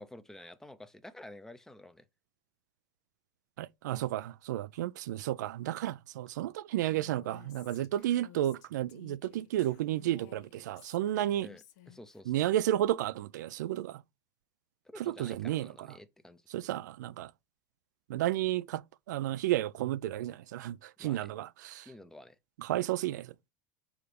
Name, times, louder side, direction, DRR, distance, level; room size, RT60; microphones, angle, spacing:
voice 1, 0.0-2.0 11.4-12.4 14.8-16.4 21.0-21.3 21.8-22.4, left 1 dB, 5° left, 0.6 m, -50 dB
voice 2, 3.6-11.5 12.3-14.0 15.0-15.9 16.5-17.3 18.1-18.8 19.1-21.9 22.6-23.3, right 13 dB, 85° right, 0.4 m, -32 dB
Female speech woman speaking, 6.8-12.2, left 12 dB, 75° left, 1.1 m, -56 dB
4.9 x 4.8 x 5.1 m
supercardioid pair, 115°, 9 cm